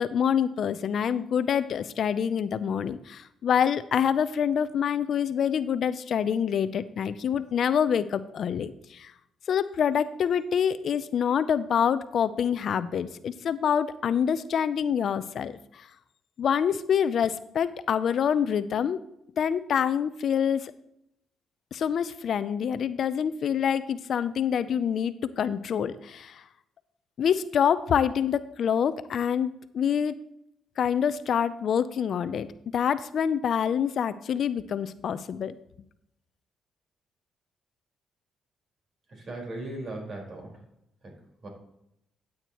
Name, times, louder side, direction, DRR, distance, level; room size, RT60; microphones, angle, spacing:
voice 1, 0.0-9.1 9.5-15.9 16.4-19.0 19.4-20.7 21.7-26.4 27.2-30.1 30.8-32.5 32.7-35.5, left 8 dB, 60° left, 14 dB, 0.5 m, -26 dB
voice 2, 39.1-40.6 41.0-41.2 41.4-41.5, right 2 dB, 45° right, 1 dB, 4.6 m, -38 dB
13.5 x 8.6 x 3.0 m, 0.79 s
cardioid pair, 90°, 0 cm